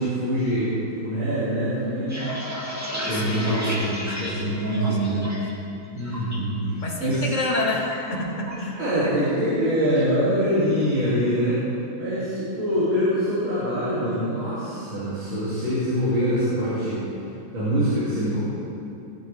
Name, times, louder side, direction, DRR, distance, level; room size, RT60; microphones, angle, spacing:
voice 1, 0.0-2.3 3.0-3.9 4.2-5.2 6.0-6.6 7.0-7.3 8.8-11.6 12.0-17.0 17.5-18.4, equal, 80° right, -12 dB, 3.5 m, -24 dB
sound 1, 1.8-5.5 5.8-6.4 6.8-7.2 7.4-8.7 9.0-9.3 9.6-10.1, equal, 10° right, 2.3 m, -32 dB
voice 2, 3.1-4.4 4.7-5.4 6.8-8.8, left 2 dB, 40° left, -1 dB, 1.8 m, -29 dB
18.5 x 9.7 x 3.5 m, 2.6 s
omnidirectional pair, 2.1 m